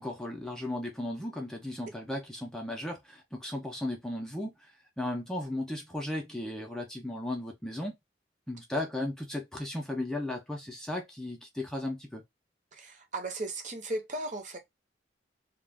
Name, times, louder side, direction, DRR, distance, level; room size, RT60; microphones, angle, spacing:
voice 1, 0.0-8.0 8.5-12.2, left 1 dB, 5° left, 0.4 m, -36 dB
voice 2, 12.7-14.6, right 2 dB, 45° right, 0.7 m, -36 dB
2.3 x 2.1 x 3.3 m
head